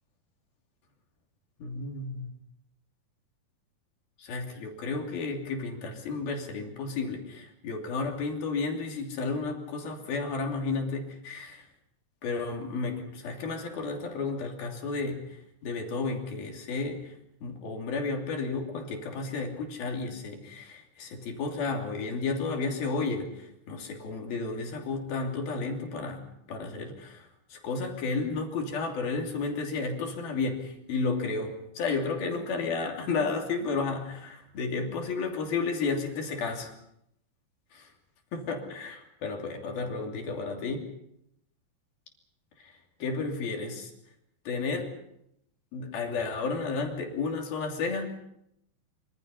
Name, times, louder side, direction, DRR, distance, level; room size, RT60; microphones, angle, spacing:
voice 1, 1.6-2.3 4.2-11.6 12.2-15.2 15.6-17.1 17.4-36.7 37.7-37.9 38.3-40.8 42.6-42.7 43.0-43.9 44.5-44.9 45.7-48.1, left 4 dB, 70° left, 2 dB, 4.8 m, -32 dB
25.5 x 25.5 x 5.5 m, 0.77 s
omnidirectional pair, 4.5 m